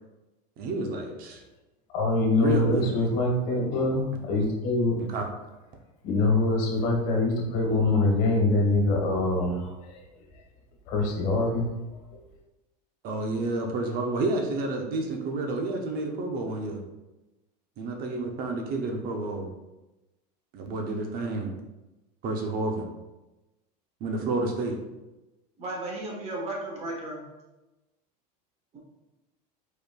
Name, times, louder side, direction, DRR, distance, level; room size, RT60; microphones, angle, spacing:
voice 1, 0.6-1.4 2.4-3.1 5.1-5.3 13.0-16.8 17.8-19.5 20.5-21.5 22.2-22.9 24.0-24.8, right 2 dB, 45° right, 2 dB, 0.8 m, -30 dB
voice 2, 1.9-5.0 6.0-10.0 10.9-11.7 12.1-12.2, left 2 dB, 65° left, 0 dB, 1.4 m, -24 dB
voice 3, 25.6-27.2, right 2 dB, 30° right, -1 dB, 1.3 m, -34 dB
5.1 x 4.3 x 2.4 m, 1.0 s
supercardioid pair, 130°, 21 cm